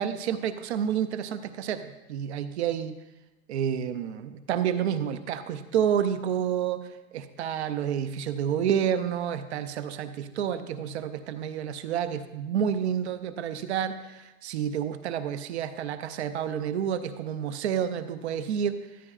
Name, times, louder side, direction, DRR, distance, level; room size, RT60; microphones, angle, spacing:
voice 1, 0.0-2.9 3.5-6.8 7.1-18.8, right 8 dB, 50° right, 10 dB, 0.6 m, -29 dB
13.5 x 9.0 x 2.4 m, 1.0 s
supercardioid pair, 165°, 44 cm